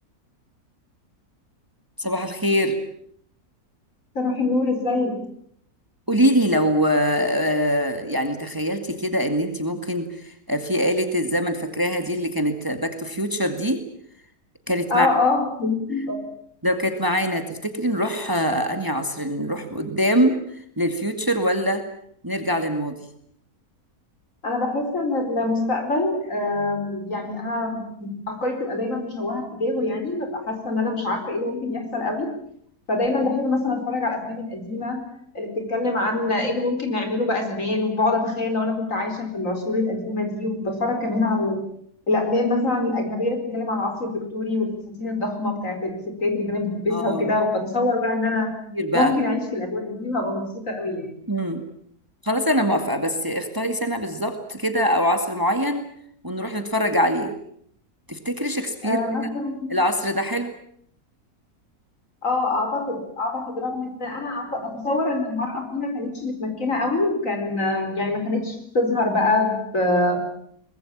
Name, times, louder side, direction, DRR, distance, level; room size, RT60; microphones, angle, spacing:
voice 1, 2.0-2.8 6.1-13.8 14.7-15.1 16.6-21.8 22.2-22.9 46.9-47.3 48.7-49.1 51.3-51.6 52.2-55.8 56.2-57.3 58.1-59.0 59.7-60.5, equal, 15° right, 7 dB, 2.2 m, -23 dB
voice 2, 4.1-5.2 14.9-16.3 24.4-32.4 32.9-35.0 35.3-41.6 42.1-44.7 45.0-45.9 46.2-48.5 48.9-51.1 58.8-59.8 62.2-70.2, left 2 dB, 55° left, 5 dB, 4.9 m, -25 dB
24.0 x 20.5 x 8.8 m, 0.67 s
omnidirectional pair, 1.6 m